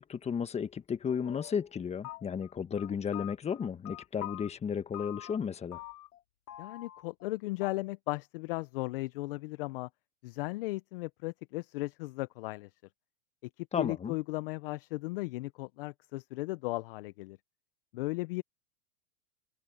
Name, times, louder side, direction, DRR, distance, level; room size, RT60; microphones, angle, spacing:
voice 1, 0.0-5.8 13.7-14.1, left 7 dB, 15° left, 1.4 m, -34 dB
sound 1, 1.1-1.8 2.0-2.5 2.8-4.5 4.9-5.5 5.7-6.2 6.5-7.3 7.6-7.7, left 15 dB, 75° left, 3.6 m, -45 dB
voice 2, 6.6-9.9 10.2-12.7 13.6-17.4 17.9-18.4, left 22 dB, 40° left, 0.5 m, -36 dB
hypercardioid pair, 140°, 46 cm